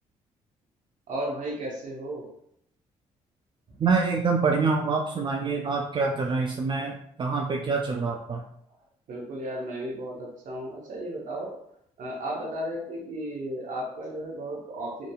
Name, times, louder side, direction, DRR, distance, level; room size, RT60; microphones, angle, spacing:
voice 1, 1.1-2.3 9.1-11.6 12.0-15.1, right 1 dB, 55° right, -2 dB, 0.8 m, -34 dB
voice 2, 3.8-8.4, right 4 dB, 30° right, 1 dB, 0.3 m, -26 dB
2.6 x 2.6 x 2.3 m, 0.72 s
hypercardioid pair, 50°, 15 cm